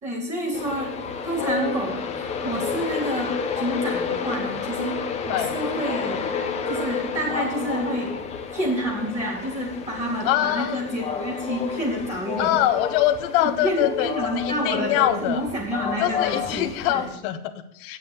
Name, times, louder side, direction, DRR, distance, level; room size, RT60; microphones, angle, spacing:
voice 1, 0.0-1.0 1.2-6.3 6.7-8.2 8.5-12.6 13.4-17.1, equal, 15° right, -1 dB, 3.4 m, -29 dB
Train, 0.5-17.1, left 6 dB, 15° left, 0.9 m, -30 dB
voice 2, 10.2-10.8 12.4-15.4 16.0-18.0, left 12 dB, 35° left, 8 dB, 1.1 m, -24 dB
8.7 x 7.6 x 8.3 m, 0.71 s
hypercardioid pair, 145°, 45 cm